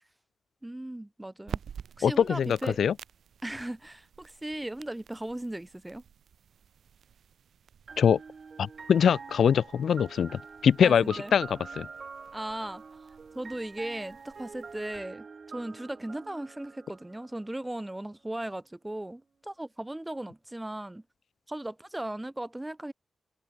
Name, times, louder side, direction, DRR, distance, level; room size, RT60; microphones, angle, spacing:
voice 1, 0.6-1.6 2.0-2.8 3.4-6.0 10.8-11.4 12.3-21.0 21.5-22.9, right 1 dB, 10° right, 1.7 m, -37 dB
sound 1, 1.4-15.0, right 8 dB, 85° right, 3.2 m, -49 dB
voice 2, 2.0-2.9 8.0-8.2 8.6-11.9, left 8 dB, 85° left, 0.3 m, -23 dB
sound 2, 7.9-17.7, right 5 dB, 40° right, 4.4 m, -46 dB
wide cardioid pair, 160°, 0 cm